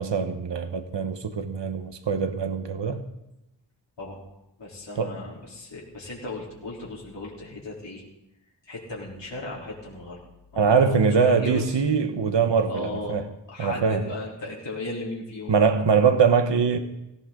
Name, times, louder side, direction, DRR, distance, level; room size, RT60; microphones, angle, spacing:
voice 1, 0.0-3.0 5.0-5.2 10.6-13.2 13.6-14.0 15.5-16.8, right 5 dB, 75° right, 1.3 m, -22 dB
voice 2, 4.6-8.0 8.7-10.2 10.5-11.8 12.7-13.2 13.5-15.6, left 2 dB, 80° left, 3.9 m, -36 dB
17.5 x 16.5 x 3.9 m
wide cardioid pair, 90°, 43 cm